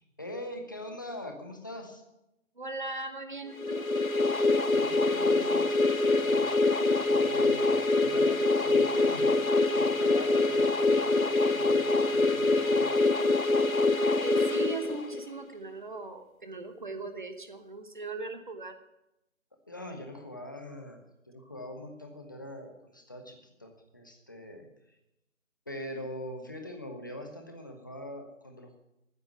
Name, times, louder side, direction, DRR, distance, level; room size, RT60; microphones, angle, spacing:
voice 1, 0.0-2.0 4.7-7.7 8.0-12.9 19.7-24.7 25.7-28.8, left 1 dB, 15° left, 4 dB, 0.9 m, -43 dB
voice 2, 2.6-3.9 14.2-18.8, right 3 dB, 35° right, 7 dB, 1.1 m, -39 dB
sound 1, 3.6-15.4, left 3 dB, 90° left, 1.0 m, -25 dB
14.5 x 9.3 x 6.8 m, 0.87 s
figure-of-eight pair, 155°, 40 cm